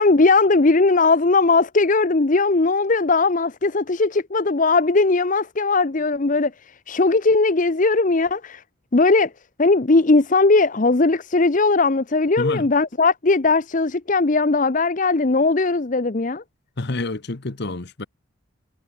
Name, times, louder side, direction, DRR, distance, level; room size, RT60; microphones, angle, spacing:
voice 1, 0.0-8.6 8.9-9.3 9.6-16.4, left 3 dB, 40° left, 0.7 m, -18 dB
voice 2, 12.4-12.7 16.8-18.1, left 2 dB, 55° left, 1.1 m, -28 dB
head